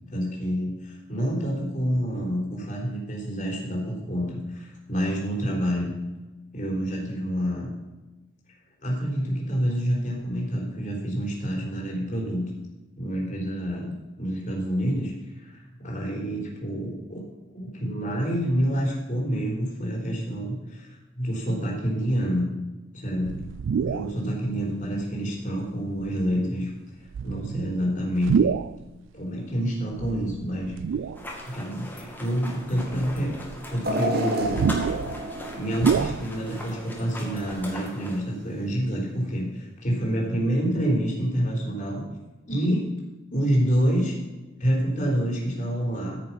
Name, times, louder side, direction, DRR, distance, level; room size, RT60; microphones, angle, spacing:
voice 1, 0.1-5.9 6.5-7.8 8.8-12.5 13.0-17.3 17.5-22.5 22.9-23.4 23.8-26.7 27.2-28.6 29.1-30.7 31.4-33.3 33.7-34.8 35.6-42.0 42.5-42.9 43.3-44.1 44.6-46.2, equal, 40° left, -2 dB, 3.8 m, -27 dB
sound 1, 23.2-24.2 24.8-24.9 26.0-26.3 27.1-28.8 29.9-31.5 32.0-32.1 32.7-36.7 37.0-37.1 37.3-37.8, right 6 dB, 75° right, 0.3 m, -28 dB
sound 2, 31.1-38.2, left 1 dB, 10° left, 2.3 m, -39 dB
sound 3, 33.8-37.0 37.4-37.6 38.6-38.7, equal, 55° right, 1.9 m, -30 dB
14.0 x 6.7 x 5.8 m, 1.1 s
head